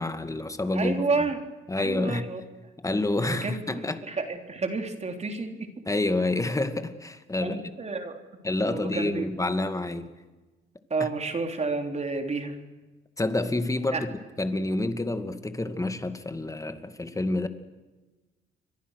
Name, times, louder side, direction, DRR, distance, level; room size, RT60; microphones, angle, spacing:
voice 1, 0.0-1.1 1.7-2.2 2.8-4.0 5.9-7.6 8.4-10.1 13.2-14.1 14.4-17.5, left 2 dB, 15° left, 2.3 m, -28 dB
voice 2, 0.7-1.4 1.8-2.4 3.2-5.7 7.4-8.1 8.6-9.3 10.9-12.6 13.9-14.0, right 3 dB, 35° right, 3.6 m, -30 dB
29.5 x 23.5 x 6.6 m
cardioid pair, 90°, 20 cm